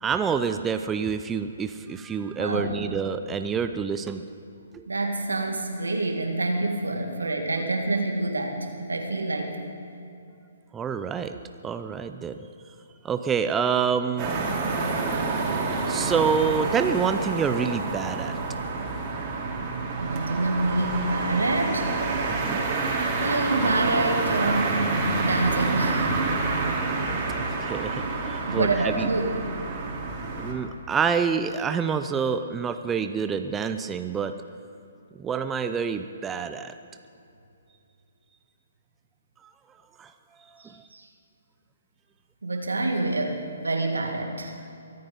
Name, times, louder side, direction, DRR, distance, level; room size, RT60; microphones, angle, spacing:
voice 1, 0.0-4.2 4.7-4.8 10.7-12.4 13.0-14.3 14.6-14.7 15.0-15.3 15.9-18.3 22.3-22.6 27.4-29.1 30.4-34.3 35.2-36.7 40.0-40.1 40.5-40.8, right 6 dB, 15° right, 8 dB, 0.5 m, -27 dB
voice 2, 2.4-2.8 4.9-9.6 20.0-21.9 23.2-26.1 28.5-29.4 40.6-41.1 42.4-44.5, right 2 dB, 85° right, 3 dB, 2.2 m, -27 dB
sound 1, 14.2-30.5, right 3 dB, 30° right, 3.1 m, -28 dB
23.0 x 9.4 x 5.4 m, 2.6 s
figure-of-eight pair, 135°, 0 cm